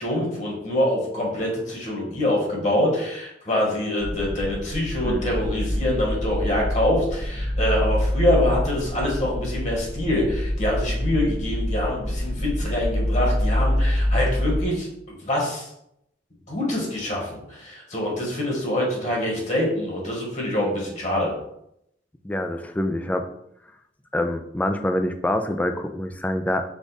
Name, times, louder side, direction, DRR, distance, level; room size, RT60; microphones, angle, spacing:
voice 1, 0.0-15.7 16.5-21.3, left 1 dB, 45° left, -2 dB, 1.4 m, -25 dB
sound 1, 4.0-14.6, left 1 dB, 30° right, 0.9 m, -26 dB
voice 2, 22.2-23.3 24.1-26.6, left 1 dB, 10° left, 6 dB, 0.3 m, -25 dB
5.2 x 2.4 x 4.0 m, 0.77 s
head